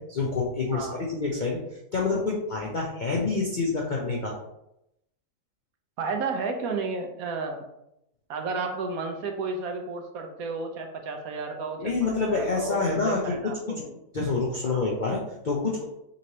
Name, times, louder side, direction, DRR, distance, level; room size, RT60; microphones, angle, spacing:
voice 1, 0.1-1.6 1.9-4.3 11.8-13.5 14.1-15.8, left 3 dB, 65° left, -2 dB, 0.4 m, -27 dB
voice 2, 6.0-7.6 8.3-13.9 14.6-14.8, right 4 dB, 70° right, 5 dB, 1.0 m, -32 dB
5.1 x 3.1 x 2.8 m, 0.84 s
omnidirectional pair, 1.7 m